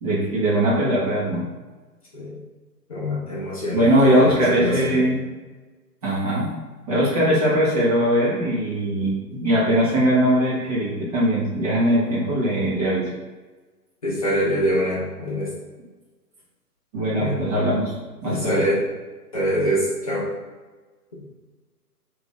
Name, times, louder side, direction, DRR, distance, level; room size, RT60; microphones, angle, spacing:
voice 1, 0.0-1.5 3.7-5.2 6.0-6.5 6.9-13.1 16.9-17.9 18.2-18.6, equal, 25° right, -6 dB, 0.8 m, -20 dB
voice 2, 2.9-5.0 14.0-15.5 17.2-17.3 18.2-18.8 19.3-20.3 21.1-21.2, equal, 25° left, -6 dB, 0.6 m, -24 dB
3.7 x 2.5 x 3.6 m, 1.3 s
figure-of-eight pair, 135°, 49 cm